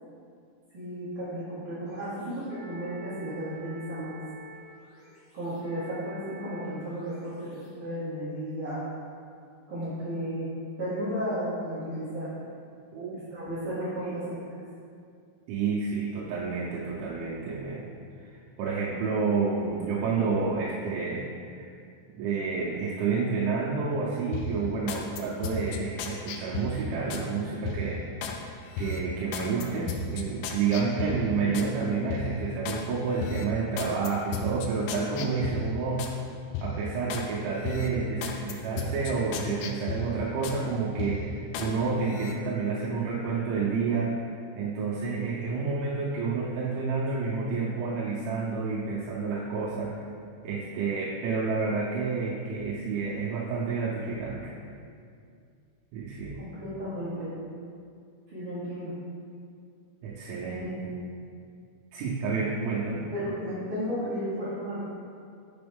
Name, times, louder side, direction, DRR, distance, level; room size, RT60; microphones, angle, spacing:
voice 1, 0.7-4.1 5.3-8.8 9.7-10.5 10.8-12.3 13.1-14.4 56.4-57.3 58.3-58.9 60.4-60.8 63.1-64.8, equal, 50° right, -12 dB, 1.7 m, -34 dB
sound 1, 1.8-8.1, equal, 55° left, 1.9 m, -49 dB
voice 2, 15.5-17.9 18.2-21.7 22.1-28.4 28.8-36.1 36.6-50.0 50.4-54.6 55.9-56.4 60.0-60.7 61.9-63.0, right 4 dB, 80° right, -6 dB, 3.0 m, -29 dB
sound 2, 24.3-27.3 27.7-28.4 28.7-31.7 32.1-32.8 33.2-36.2 36.5-37.3 37.6-40.6 41.0-41.7 42.1-42.3, left 3 dB, 90° left, 2.4 m, -35 dB
6.9 x 6.9 x 3.5 m, 2.3 s
omnidirectional pair, 5.5 m